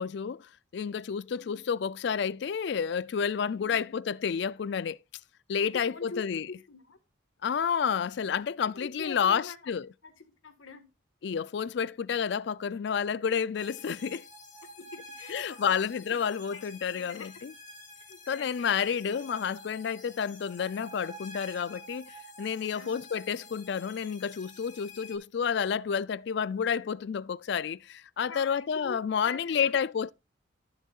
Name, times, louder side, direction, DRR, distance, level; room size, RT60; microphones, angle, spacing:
voice 1, 0.0-5.0 5.5-6.5 7.4-9.9 11.2-14.3 15.3-17.5 18.3-30.1, left 7 dB, 60° left, 0.3 m, -30 dB
voice 2, 3.5-4.0 5.7-7.0 8.7-9.7 10.0-10.9 14.8-15.8 16.1-16.2 16.5-16.6 16.9-17.3 18.0-18.8 22.7-23.1 28.2-29.0 29.3-29.8, left 4 dB, 85° left, 1.6 m, -44 dB
sound 1, 13.6-25.2, left 2 dB, 40° left, 2.3 m, -49 dB
14.5 x 6.5 x 2.4 m
head